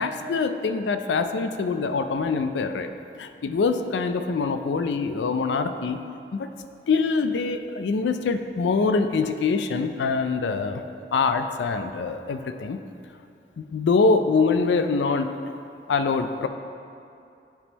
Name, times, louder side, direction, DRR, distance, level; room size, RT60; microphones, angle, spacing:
voice 1, 0.0-2.9 3.2-6.0 6.3-6.5 6.9-10.8 11.1-12.8 13.6-15.3 15.9-16.5, left 4 dB, 90° left, 8 dB, 0.4 m, -24 dB
9.7 x 3.7 x 4.1 m, 2.6 s
head